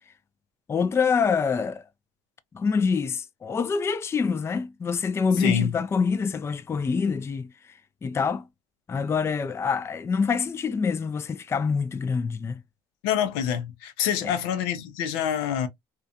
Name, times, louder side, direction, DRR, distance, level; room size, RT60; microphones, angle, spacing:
voice 1, 0.7-1.8 2.5-7.5 8.0-8.4 8.9-12.6 14.2-14.3, left 5 dB, 20° left, 0.3 m, -26 dB
voice 2, 5.4-5.7 13.0-15.7, left 9 dB, 85° left, 0.6 m, -26 dB
2.4 x 2.2 x 2.6 m
supercardioid pair, 90°, 12 cm